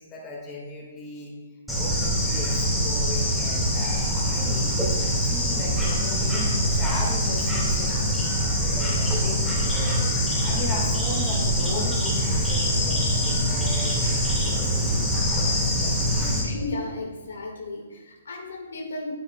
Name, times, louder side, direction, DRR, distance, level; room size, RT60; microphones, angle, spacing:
voice 1, 0.0-1.4 1.7-5.0 5.2-16.5, left 1 dB, 20° left, -3 dB, 2.1 m, -37 dB
Bird / Insect, 1.7-16.4, equal, ahead, 2.2 m, -24 dB
voice 2, 16.4-19.1, left 2 dB, 80° left, 0 dB, 2.0 m, -34 dB
9.3 x 8.8 x 2.4 m, 1.2 s
hypercardioid pair, 150°, 0 cm